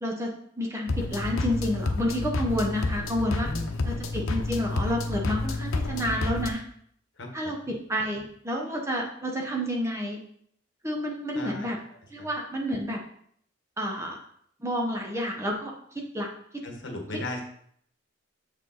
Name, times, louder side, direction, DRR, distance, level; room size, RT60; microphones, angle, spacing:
voice 1, 0.0-3.5 3.8-6.6 7.3-10.2 10.8-11.8 12.1-13.0 13.8-14.2 14.6-16.3 16.5-16.6 17.1-17.2, equal, 15° right, 0 dB, 0.9 m, -30 dB
sound 1, 0.9-6.5, left 2 dB, 85° left, 0.8 m, -29 dB
voice 2, 3.4-4.0 7.2-7.3 11.3-11.7 16.6-17.4, left 1 dB, 60° left, 2 dB, 1.3 m, -36 dB
6.9 x 5.1 x 4.1 m, 0.66 s
head